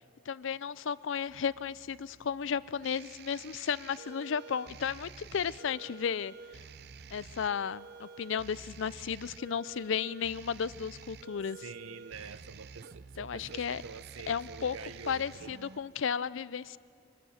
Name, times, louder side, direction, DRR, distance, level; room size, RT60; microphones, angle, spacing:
voice 1, 0.3-6.3 7.1-11.6 13.2-13.8 14.3-14.8 15.1-16.8, left 7 dB, 65° left, 19 dB, 0.4 m, -34 dB
sound 1, 1.3-15.8, right 5 dB, 50° right, 0.5 m, -50 dB
voice 2, 11.6-15.5, right 5 dB, 85° right, 15 dB, 0.7 m, -46 dB
24.5 x 20.5 x 6.4 m, 2.4 s
head